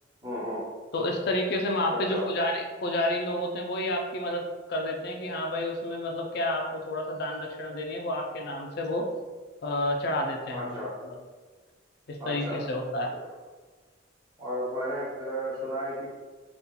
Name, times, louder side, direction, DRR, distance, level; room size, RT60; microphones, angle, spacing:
voice 1, 0.2-0.7 1.9-2.3 10.5-10.9 12.2-12.6 14.4-16.1, equal, 20° right, -8 dB, 1.2 m, -33 dB
voice 2, 0.9-9.1 9.6-10.8 11.0-11.2 12.1-13.1, left 1 dB, 60° left, 1 dB, 0.4 m, -30 dB
2.7 x 2.4 x 3.7 m, 1.4 s
head